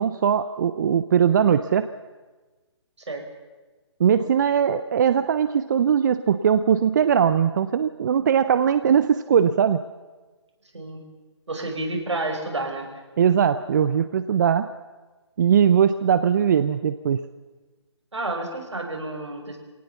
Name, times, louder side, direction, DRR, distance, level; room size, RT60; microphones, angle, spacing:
voice 1, 0.0-1.9 4.0-9.8 13.2-14.7 15.4-17.3, right 8 dB, 40° right, 12 dB, 0.7 m, -20 dB
voice 2, 11.5-12.9 18.1-19.6, right 2 dB, 75° right, 2 dB, 5.7 m, -30 dB
24.5 x 18.0 x 7.1 m, 1.2 s
figure-of-eight pair, 150°, 15 cm